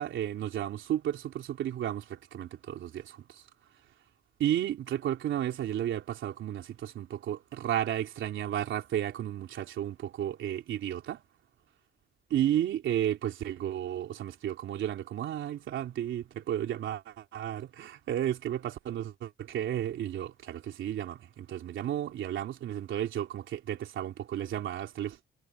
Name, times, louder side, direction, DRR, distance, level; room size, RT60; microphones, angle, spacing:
voice 1, 0.0-3.4 4.4-11.2 12.3-25.2, right 11 dB, 75° right, 3.5 m, -33 dB
cardioid pair, 90°, 20 cm